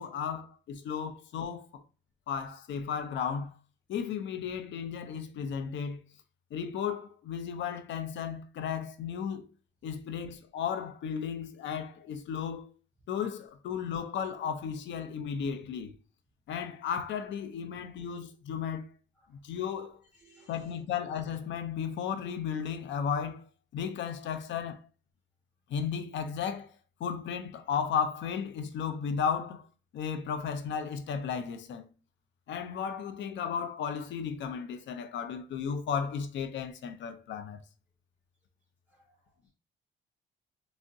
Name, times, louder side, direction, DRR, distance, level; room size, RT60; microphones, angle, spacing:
voice 1, 0.0-1.8 2.3-3.5 3.9-6.0 6.5-9.5 9.8-12.7 13.1-15.9 16.5-18.9 19.3-20.0 20.5-23.5 23.7-24.8 25.7-26.7 27.0-29.7 29.9-31.9 32.5-37.6, left 7 dB, 70° left, 0.5 m, -34 dB
voice 2, 20.1-20.8 38.9-39.5, right 1 dB, 5° right, 0.9 m, -63 dB
3.4 x 2.1 x 2.6 m
cardioid pair, 90°, 20 cm